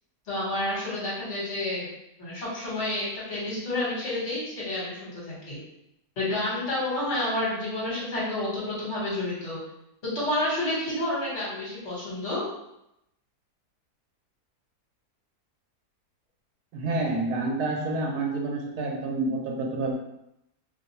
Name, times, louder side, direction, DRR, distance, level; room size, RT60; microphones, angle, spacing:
voice 1, 0.3-1.9 2.2-5.6 6.2-9.6 10.0-12.4, left 1 dB, 50° left, -7 dB, 1.4 m, -29 dB
voice 2, 16.7-20.0, right 2 dB, 80° right, 0 dB, 1.1 m, -28 dB
2.8 x 2.2 x 4.0 m, 0.84 s
omnidirectional pair, 1.7 m